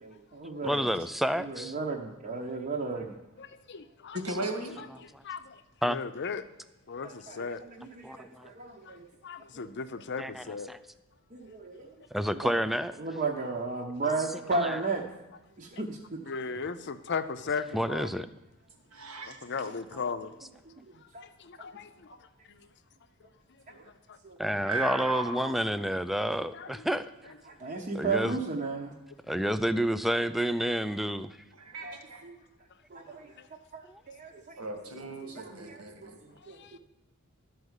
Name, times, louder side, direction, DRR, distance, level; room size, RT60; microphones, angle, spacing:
voice 1, 0.0-1.0 1.4-3.2 7.0-9.1 9.5-9.6 11.3-11.9 12.3-12.7 13.0-15.1 15.6-16.3 19.6-19.7 20.9-21.3 21.6-21.7 23.7-23.8 24.2-24.4 27.4-28.9 31.8-32.4 32.9-33.3 33.7-34.4 34.9-36.6, right 3 dB, 40° right, 0.9 m, -35 dB
voice 2, 0.6-1.7 5.1-5.2 5.8-6.0 8.0-8.5 10.2-10.8 12.1-12.9 14.6-14.8 17.7-18.3 24.4-27.1 27.9-28.4 29.3-31.4 33.9-34.0, equal, ahead, 0.3 m, -29 dB
voice 3, 3.4-4.2 4.8-4.9 5.2-6.4 6.9-7.6 8.9-9.0 9.2-10.7 16.3-18.3 19.3-20.3 21.2-22.1 22.5-22.6 24.1-24.2 26.5-26.9 28.2-28.3 33.4-33.5 36.4-36.8, left 5 dB, 50° left, 0.6 m, -37 dB
voice 4, 4.2-4.7 18.9-19.4 24.7-25.5 31.6-32.2 34.6-36.2, right 2 dB, 85° right, 1.9 m, -36 dB
12.0 x 4.7 x 8.1 m
head